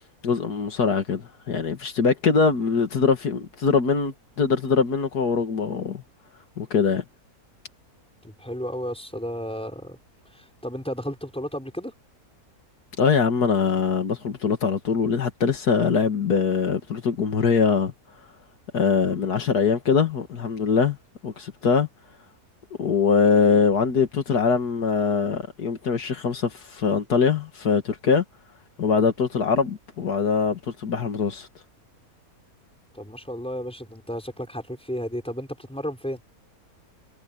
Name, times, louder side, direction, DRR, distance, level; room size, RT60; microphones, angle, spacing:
voice 1, 0.2-6.0 6.6-7.0 13.0-17.9 18.7-21.0 21.2-21.9 22.8-28.2 28.8-31.5, left 5 dB, 80° left, 2.4 m, -22 dB
voice 2, 8.2-10.0 10.3-11.9 32.9-36.2, equal, 5° left, 5.7 m, -33 dB
omnidirectional pair, 1.6 m